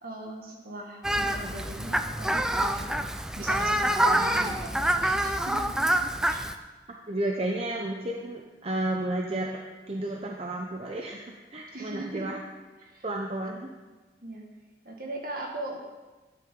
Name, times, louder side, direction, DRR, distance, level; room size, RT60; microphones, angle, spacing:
voice 1, 0.0-5.9 6.3-6.4 11.7-12.3 12.8-13.1 14.2-14.5 14.8-15.8, right 1 dB, 55° right, 1 dB, 1.9 m, -39 dB
Fowl, 1.0-6.5, right 1 dB, 5° right, 0.4 m, -26 dB
voice 2, 7.1-12.4 13.0-13.7, right 1 dB, 35° right, 0 dB, 0.8 m, -32 dB
12.0 x 9.9 x 3.8 m, 1.3 s
head